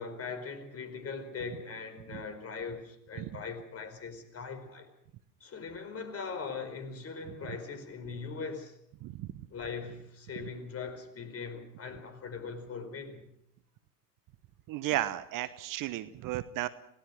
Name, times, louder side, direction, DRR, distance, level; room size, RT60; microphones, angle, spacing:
voice 1, 0.0-4.9 5.4-8.8 9.5-13.3, left 5 dB, 30° left, 4.7 m, -40 dB
voice 2, 14.7-16.7, right 14 dB, 40° right, 1.2 m, -34 dB
28.0 x 18.5 x 6.4 m
figure-of-eight pair, 80°, 49 cm